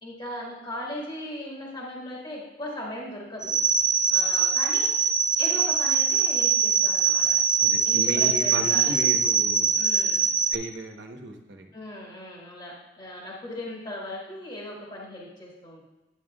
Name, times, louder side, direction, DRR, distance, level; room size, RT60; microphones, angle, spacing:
voice 1, 0.0-3.5 4.1-4.9 5.4-7.4 7.8-9.0 9.7-10.3 11.7-15.8, left 1 dB, 25° left, -4 dB, 1.6 m, -38 dB
sound 1, 3.4-10.5, right 6 dB, 5° right, 0.5 m, -23 dB
voice 2, 7.6-9.8 10.5-11.7, right 1 dB, 70° right, 3 dB, 1.0 m, -35 dB
10.0 x 8.8 x 2.3 m, 1.1 s
head